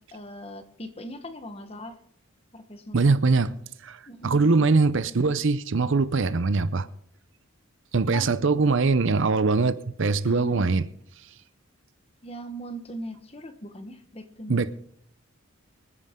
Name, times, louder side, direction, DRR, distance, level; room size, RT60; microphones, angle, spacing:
voice 1, 0.1-1.9 2.5-3.0 4.1-4.7 8.1-8.3 10.2-10.8 12.2-14.7, equal, 25° left, 1.2 m, -39 dB
voice 2, 2.9-3.6 3.8-6.9 7.9-10.8 14.5-14.7, right 4 dB, 60° right, 0.6 m, -22 dB
25.0 x 9.7 x 3.7 m
head